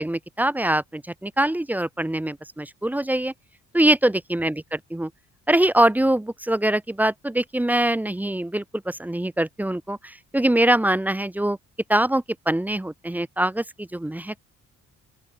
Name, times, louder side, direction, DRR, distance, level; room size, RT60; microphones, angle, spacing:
voice 1, 0.0-3.3 3.7-5.1 5.5-11.6 11.9-14.5, right 1 dB, 5° right, 0.5 m, -23 dB
open air
cardioid pair, 90°, 30 cm